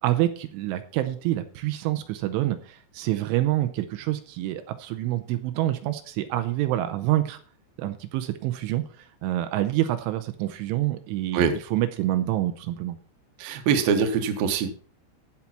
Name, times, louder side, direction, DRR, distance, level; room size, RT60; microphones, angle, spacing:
voice 1, 0.0-7.4 7.8-13.0, right 14 dB, 80° right, 9 dB, 3.3 m, -27 dB
voice 2, 13.4-14.7, right 6 dB, 65° right, 6 dB, 2.8 m, -23 dB
15.5 x 5.7 x 5.7 m, 0.41 s
omnidirectional pair, 5.5 m